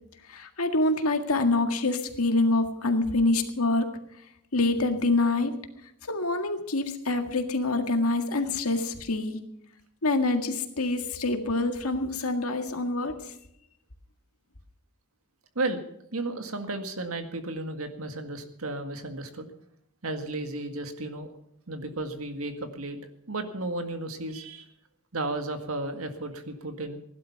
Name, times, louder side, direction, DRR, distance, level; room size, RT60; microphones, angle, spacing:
voice 1, 0.3-3.9 4.5-5.5 6.1-9.4 10.0-13.3, left 2 dB, 85° left, 6 dB, 1.9 m, -26 dB
voice 2, 16.1-19.5 20.0-21.3 21.7-23.0 23.3-24.7 25.1-27.0, right 2 dB, 75° right, 7 dB, 1.9 m, -33 dB
17.0 x 11.5 x 5.9 m, 0.77 s
head